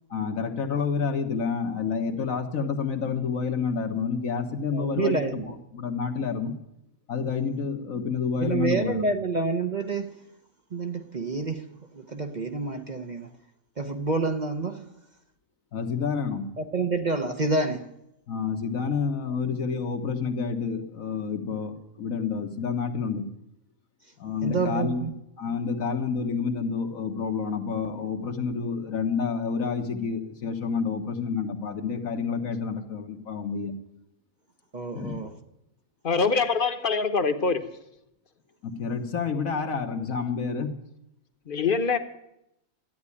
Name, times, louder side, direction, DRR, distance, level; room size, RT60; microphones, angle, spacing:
voice 1, 0.1-6.6 7.1-9.1 15.7-16.5 18.3-23.3 24.2-25.1 25.4-33.8 34.9-35.2 38.6-40.7, left 5 dB, 80° left, 1.8 m, -29 dB
voice 2, 4.7-5.5 8.4-10.2 10.7-13.3 13.8-14.9 16.6-17.9 24.4-25.1 34.7-35.3, right 3 dB, 40° right, 0.9 m, -28 dB
voice 3, 36.0-37.6 41.5-42.0, left 4 dB, 40° left, 1.1 m, -24 dB
13.0 x 9.7 x 9.8 m
omnidirectional pair, 1.4 m